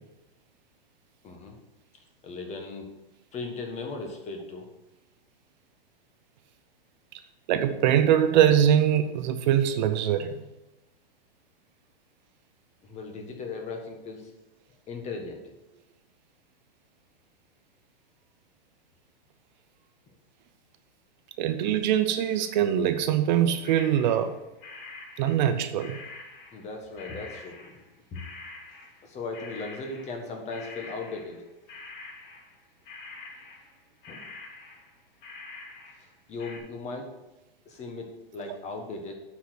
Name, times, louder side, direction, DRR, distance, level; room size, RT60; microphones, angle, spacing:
voice 1, 1.2-1.6 2.2-2.9 3.3-4.7 12.8-14.3 14.9-15.4 26.5-27.8 28.1-28.3 29.0-31.4 34.1-34.3 36.3-37.1 37.6-39.1, left 3 dB, 25° left, 4 dB, 1.4 m, -37 dB
voice 2, 7.5-10.4 21.4-24.3 25.2-26.0, right 10 dB, 50° right, 9 dB, 0.7 m, -23 dB
sound 1, 23.6-24.4 24.6-26.7 27.0-36.1 36.4-36.6, left 3 dB, 55° left, 2.3 m, -45 dB
8.2 x 5.0 x 6.2 m, 0.96 s
hypercardioid pair, 140°, 30 cm